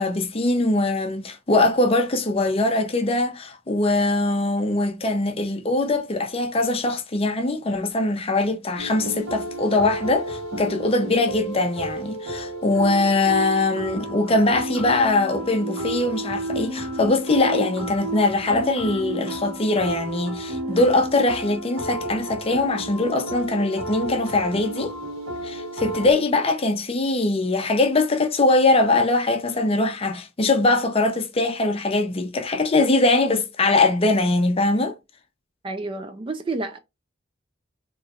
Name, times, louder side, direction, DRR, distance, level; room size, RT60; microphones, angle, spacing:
voice 1, 0.0-24.9 25.4-35.0, left 2 dB, 30° left, 0.6 m, -22 dB
sound 1, 8.8-26.1, right 1 dB, 80° right, 1.5 m, -32 dB
voice 2, 35.6-36.8, right 3 dB, 25° right, 0.4 m, -30 dB
3.9 x 3.0 x 2.4 m
head